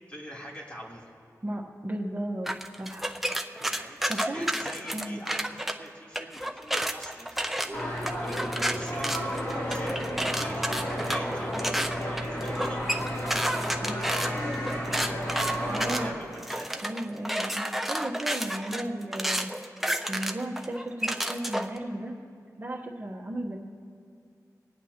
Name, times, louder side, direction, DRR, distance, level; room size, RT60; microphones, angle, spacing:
voice 1, 0.1-1.1 3.7-14.5 14.8-16.8, equal, 20° left, -4 dB, 3.1 m, -43 dB
voice 2, 1.4-2.5 2.8-3.1 3.7-4.6 4.9-5.2 13.8-14.1 15.7-16.2 16.8-19.5 20.1-22.2 22.6-23.6, right 1 dB, 30° right, -4 dB, 1.1 m, -35 dB
sound 1, 2.5-5.7 6.1-21.8, equal, 5° right, 0.5 m, -31 dB
sound 2, 7.7-16.1, equal, 45° left, 2.9 m, -32 dB
27.0 x 9.3 x 2.9 m, 2.3 s
wide cardioid pair, 95°, 6 cm